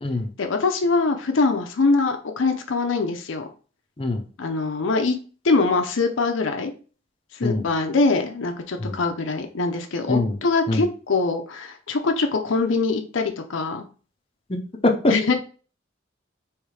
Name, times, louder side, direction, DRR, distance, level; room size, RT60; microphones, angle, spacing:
voice 1, 0.4-3.5 4.4-5.2 5.4-6.7 7.4-13.9 15.1-15.3, left 3 dB, 75° left, 5 dB, 0.6 m, -23 dB
voice 2, 14.5-15.3, left 2 dB, 30° left, 3 dB, 0.6 m, -23 dB
3.3 x 3.1 x 4.7 m, 0.38 s
head